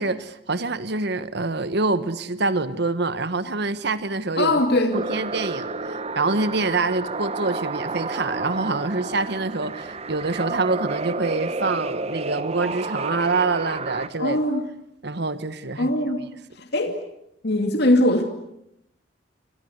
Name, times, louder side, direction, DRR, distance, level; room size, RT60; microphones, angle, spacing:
voice 1, 0.0-4.6 4.9-14.4 15.0-15.9, right 3 dB, 60° right, 1.3 m, -26 dB
voice 2, 4.4-5.0 14.2-14.6 15.8-16.3 16.6-17.0 17.4-18.2, left 1 dB, 60° left, 2.6 m, -21 dB
sound 1, 4.9-14.1, right 3 dB, 35° right, 1.1 m, -31 dB
29.0 x 25.0 x 8.1 m
head